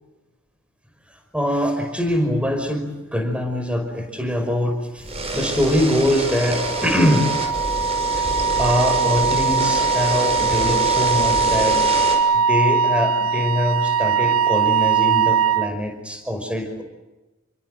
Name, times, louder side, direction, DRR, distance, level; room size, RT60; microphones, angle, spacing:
voice 1, 1.3-5.1 5.3-7.3 8.2-8.3 8.6-11.8 12.3-16.8, left 1 dB, 5° right, 5 dB, 5.4 m, -23 dB
sound 1, 5.0-12.2, right 2 dB, 30° right, 6.2 m, -27 dB
Wind instrument woodwind instrument, 6.3-15.7, right 6 dB, 80° right, 1.2 m, -21 dB
29.5 x 24.0 x 7.9 m, 1.1 s
head